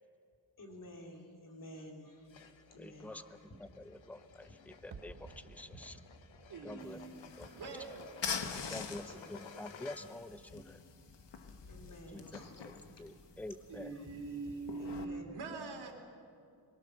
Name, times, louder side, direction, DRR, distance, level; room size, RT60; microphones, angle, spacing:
voice 1, 0.6-2.3 2.7-3.6 4.5-4.6 5.5-5.8 6.7-7.5 8.6-9.4 10.5-10.6 11.7-12.9 13.3-15.4, left 1 dB, 45° left, 3.4 m, -53 dB
sound 1, 2.3-10.4, left 6 dB, 85° left, 1.4 m, -56 dB
voice 2, 2.8-3.2 3.6-6.0 6.6-7.0 7.4-7.5 8.7-10.8 12.1-12.7 13.0-13.9, left 1 dB, 5° left, 0.7 m, -47 dB
sound 2, 4.9-9.8 10.1-10.2, right 4 dB, 45° right, 1.4 m, -57 dB
voice 3, 6.5-8.3 13.7-15.9, right 3 dB, 60° right, 3.5 m, -44 dB
sound 3, 6.8-15.1, left 6 dB, 70° left, 1.7 m, -45 dB
23.5 x 23.0 x 6.7 m
wide cardioid pair, 120°, 44 cm